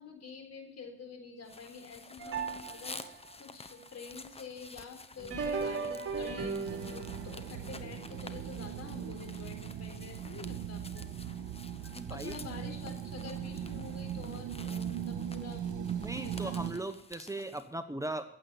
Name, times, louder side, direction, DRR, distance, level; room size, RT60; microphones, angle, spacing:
voice 1, 0.0-11.1 12.1-16.8, left 5 dB, 55° left, 6 dB, 4.0 m, -48 dB
sound 1, 1.4-17.7, left 3 dB, 20° left, 1.0 m, -51 dB
sound 2, 2.2-3.3 5.2-9.6 10.0-10.1 11.0-11.1 11.8-11.9, right 5 dB, 50° right, 2.9 m, -39 dB
sound 3, 6.7-16.7, right 9 dB, 80° right, 1.6 m, -39 dB
voice 2, 11.9-12.3 16.0-18.2, right 2 dB, 10° right, 8 dB, 1.0 m, -38 dB
15.0 x 8.1 x 7.0 m, 0.70 s
cardioid pair, 90°, 30 cm